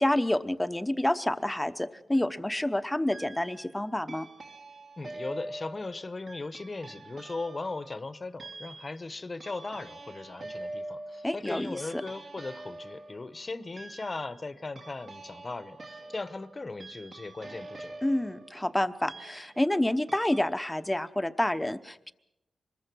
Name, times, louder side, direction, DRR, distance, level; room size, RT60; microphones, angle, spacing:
voice 1, 0.0-4.3 11.2-12.0 18.0-22.1, left 1 dB, 10° left, 11 dB, 0.9 m, -28 dB
sound 1, 1.9-2.4 3.1-3.7 4.1-19.8 20.1-20.4, right 2 dB, 50° right, 2.3 m, -45 dB
voice 2, 5.0-17.9, left 3 dB, 35° left, 14 dB, 1.0 m, -38 dB
25.0 x 21.0 x 6.2 m, 0.87 s
cardioid pair, 90°, 0 cm